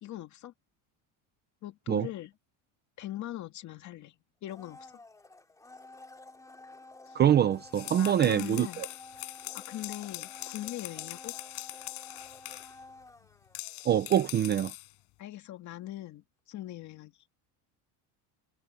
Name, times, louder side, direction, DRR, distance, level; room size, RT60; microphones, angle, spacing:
voice 1, 0.0-0.5 1.6-2.3 3.0-5.0 7.1-7.2 8.0-8.8 9.5-11.3 15.2-17.1, left 14 dB, 35° left, 2.3 m, -41 dB
Domestic sounds home sounds, 4.4-14.4 14.7-14.8, left 2 dB, 5° left, 3.3 m, -51 dB
voice 2, 7.1-8.9 13.9-14.7, right 10 dB, 20° right, 0.5 m, -25 dB
sound 1, 7.6-12.8 13.5-14.9, left 22 dB, 60° left, 4.8 m, -42 dB
cardioid pair, 180°, 47 cm